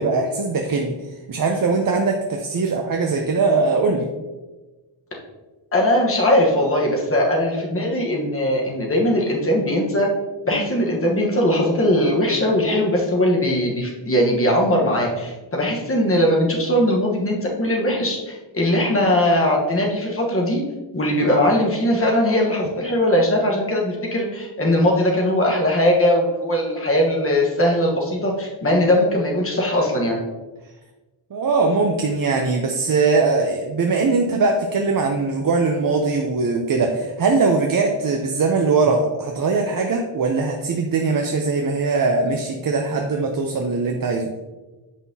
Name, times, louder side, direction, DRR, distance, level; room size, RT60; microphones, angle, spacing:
voice 1, 0.0-4.1 31.3-44.3, right 4 dB, 45° right, 2 dB, 0.6 m, -21 dB
voice 2, 5.7-10.1 10.5-20.6 20.9-30.2, left 1 dB, 25° left, -1 dB, 1.2 m, -20 dB
8.2 x 5.6 x 2.8 m, 1.2 s
wide cardioid pair, 170°, 49 cm